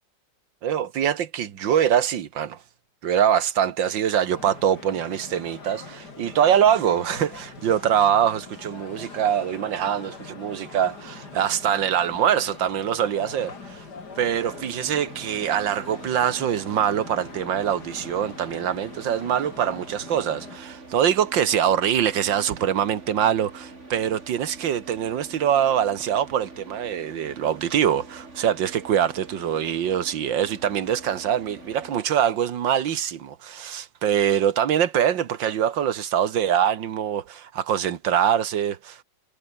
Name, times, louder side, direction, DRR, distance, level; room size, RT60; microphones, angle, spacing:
voice 1, 0.6-2.6 3.0-13.8 14.2-39.0, right 9 dB, 75° right, 2.0 m, -24 dB
sound 1, 4.3-20.6, left 4 dB, 55° left, 3.6 m, -42 dB
Car / Idling, 14.2-32.0, right 2 dB, 35° right, 4.3 m, -45 dB
omnidirectional pair, 2.1 m